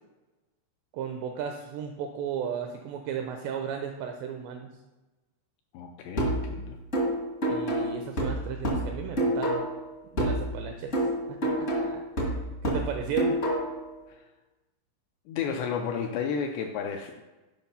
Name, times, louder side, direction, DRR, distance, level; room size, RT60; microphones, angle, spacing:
voice 1, 0.9-4.7 7.5-9.6 10.1-11.0 11.3-12.0 12.6-13.4, right 7 dB, 85° right, 4 dB, 2.5 m, -35 dB
voice 2, 5.7-6.8 14.1-14.3 15.3-17.2, left 6 dB, 85° left, 3 dB, 2.4 m, -32 dB
sound 1, 6.2-9.8 10.2-13.8, right 1 dB, 65° left, 0.7 m, -28 dB
9.1 x 5.7 x 5.5 m, 1.1 s
omnidirectional pair, 5.7 m